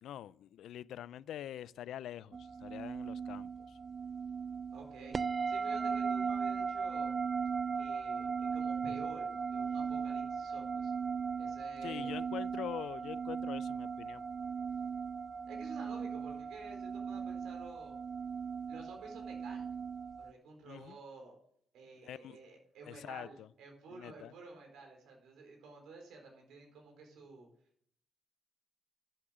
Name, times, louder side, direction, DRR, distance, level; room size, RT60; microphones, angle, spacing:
voice 1, 0.0-3.8 11.8-14.2 20.6-21.0 22.0-22.4 22.8-23.5 23.9-24.3, left 11 dB, 75° left, 0.4 m, -45 dB
sound 1, 2.3-20.3, right 6 dB, 35° right, 0.4 m, -37 dB
voice 2, 4.7-5.2 5.5-7.2 7.7-10.9 11.4-12.2 15.5-18.0 18.7-19.8 20.2-21.4 21.7-27.5, right 3 dB, 80° right, 4.4 m, -52 dB
11.0 x 7.9 x 7.5 m
cardioid pair, 90°, 0 cm